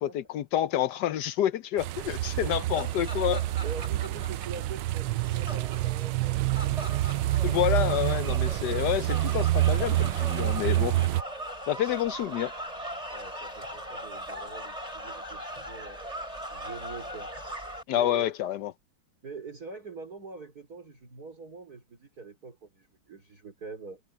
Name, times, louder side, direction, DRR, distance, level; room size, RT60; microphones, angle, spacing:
voice 1, 0.0-3.4 7.4-10.9 11.7-12.5 17.9-18.7, left 12 dB, 70° left, 1.0 m, -28 dB
sound 1, 1.8-11.2, right 15 dB, 80° right, 1.0 m, -27 dB
sound 2, 2.7-17.8, equal, 15° right, 5.4 m, -40 dB
voice 2, 3.1-6.8 13.1-16.0 16.5-17.3 17.9-18.3 19.2-24.0, right 4 dB, 45° right, 4.5 m, -44 dB
omnidirectional pair, 2.4 m